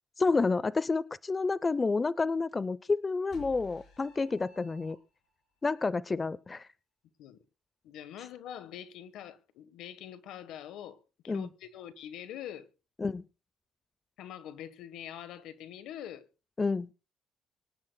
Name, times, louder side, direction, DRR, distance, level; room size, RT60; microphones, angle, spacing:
voice 1, 0.2-5.0 5.6-6.7 11.3-11.5 13.0-13.2 16.6-16.9, left 3 dB, 30° left, 0.5 m, -29 dB
sound 1, 3.3-5.4, left 3 dB, 70° left, 5.9 m, -53 dB
voice 2, 7.8-12.7 14.2-16.3, left 10 dB, 90° left, 1.2 m, -44 dB
24.5 x 10.5 x 2.3 m
cardioid pair, 90°, 0 cm